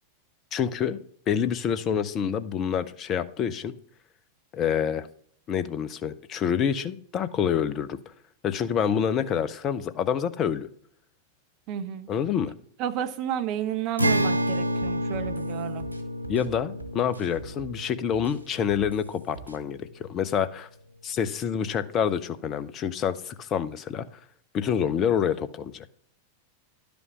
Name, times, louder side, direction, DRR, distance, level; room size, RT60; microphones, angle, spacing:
voice 1, 0.5-1.0 1.3-3.7 4.5-5.1 5.5-8.0 8.4-10.7 12.1-12.5 16.3-20.7 21.0-24.0 24.5-25.9, left 8 dB, 30° left, 14 dB, 0.7 m, -27 dB
voice 2, 11.7-12.1 12.8-15.9, right 10 dB, 40° right, 9 dB, 0.8 m, -31 dB
Acoustic guitar, 14.0-19.5, equal, 85° right, 0.5 m, -29 dB
sound 1, 14.5-17.8 18.1-19.6, right 6 dB, 90° left, 1.4 m, -44 dB
11.0 x 5.2 x 5.9 m, 0.62 s
figure-of-eight pair, 90°, 0 cm